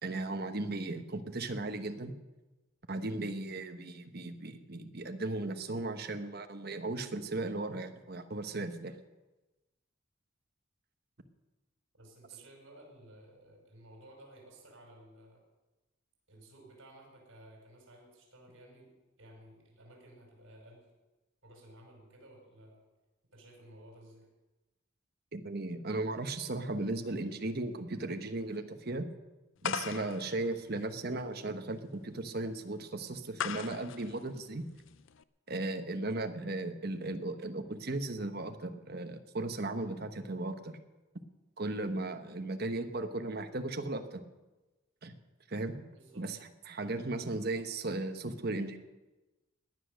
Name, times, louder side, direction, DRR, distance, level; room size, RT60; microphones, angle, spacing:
voice 1, 0.0-2.1 2.9-9.0 25.3-29.1 29.6-34.7 35.5-40.8 41.6-44.2 45.0-45.2 45.5-45.9 46.2-48.8, right 2 dB, 50° right, 7 dB, 1.2 m, -36 dB
voice 2, 11.9-15.4 16.3-20.9 21.4-22.8 23.3-24.3 45.9-46.3 47.3-47.5, right 1 dB, 70° right, -1 dB, 5.6 m, -55 dB
sound 1, 29.6-35.2, left 8 dB, 70° left, 0.5 m, -41 dB
18.5 x 10.5 x 6.5 m, 1.1 s
head